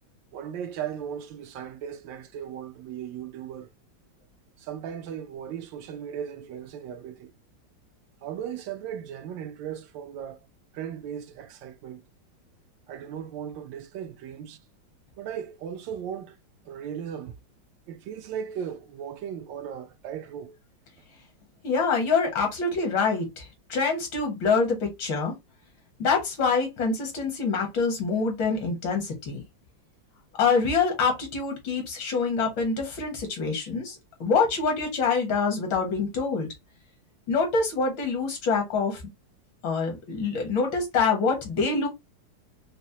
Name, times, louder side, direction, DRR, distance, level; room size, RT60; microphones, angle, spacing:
voice 1, 0.3-3.7 4.6-7.3 8.2-10.4 10.7-12.0 12.9-14.6 15.2-16.4 16.7-17.3 17.9-20.6, right 9 dB, 75° right, 1.2 m, -37 dB
voice 2, 21.6-25.3 26.0-29.4 30.4-36.5 37.3-39.0 39.6-41.9, left 4 dB, 75° left, 2.0 m, -25 dB
5.1 x 2.0 x 2.7 m
omnidirectional pair, 2.1 m